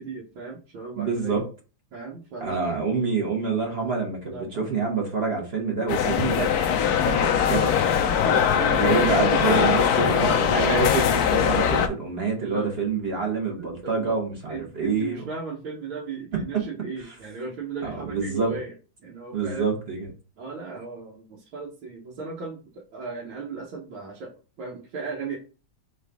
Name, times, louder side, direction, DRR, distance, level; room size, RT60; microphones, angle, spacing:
voice 1, 0.0-1.4 1.9-2.8 4.2-4.7 8.1-10.9 12.4-12.7 13.5-14.2 14.5-18.7 19.0-19.7 20.4-25.4, right 4 dB, 75° right, -4 dB, 1.8 m, -36 dB
voice 2, 1.0-1.4 2.4-7.8 8.8-15.3 17.8-18.6 19.3-20.1, right 4 dB, 35° right, 1 dB, 1.1 m, -27 dB
sound 1, 5.9-11.9, left 8 dB, 80° left, 0.8 m, -21 dB
4.0 x 3.9 x 3.4 m, 0.34 s
omnidirectional pair, 2.2 m